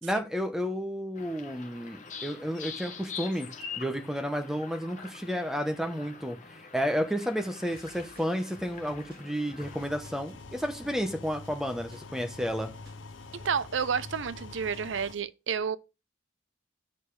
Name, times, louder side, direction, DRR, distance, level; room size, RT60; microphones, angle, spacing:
voice 1, 0.0-3.5 3.8-12.7, equal, ahead, 1.0 m, -31 dB
sound 1, 1.2-9.9, left 5 dB, 40° left, 1.2 m, -44 dB
sound 2, 7.7-15.2, equal, 50° right, 2.5 m, -56 dB
sound 3, 9.6-15.1, left 3 dB, 80° left, 0.7 m, -46 dB
voice 2, 13.3-15.8, right 6 dB, 75° right, 0.6 m, -30 dB
8.2 x 5.5 x 4.8 m
head